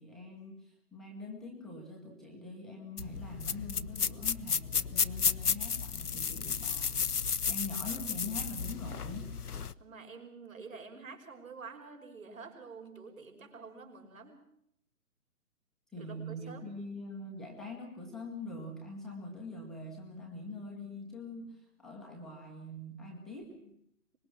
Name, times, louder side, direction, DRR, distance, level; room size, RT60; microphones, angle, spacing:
voice 1, 0.0-7.1 7.5-9.3 15.9-23.7, left 2 dB, ahead, -3 dB, 1.0 m, -43 dB
sound 1, 3.0-9.7, left 6 dB, 75° left, 0.9 m, -33 dB
voice 2, 9.8-14.4 16.0-16.7, right 4 dB, 60° right, 3 dB, 5.5 m, -48 dB
25.0 x 21.0 x 6.1 m, 0.73 s
figure-of-eight pair, 140°, 46 cm